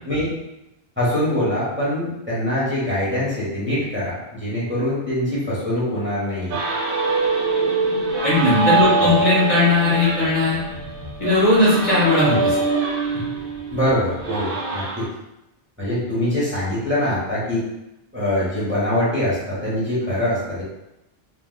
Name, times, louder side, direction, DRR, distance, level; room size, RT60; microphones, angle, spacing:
voice 1, 1.0-6.6 8.8-9.1 13.7-15.0 15.8-17.6 18.1-20.6, left 1 dB, 10° right, -9 dB, 0.9 m, -23 dB
sound 1, 6.5-15.1, right 4 dB, 65° right, 0.8 m, -23 dB
voice 2, 8.2-10.6 11.2-12.6 13.1-13.2, left 2 dB, 45° left, -8 dB, 0.9 m, -18 dB
3.4 x 2.3 x 2.2 m, 0.91 s
omnidirectional pair, 1.0 m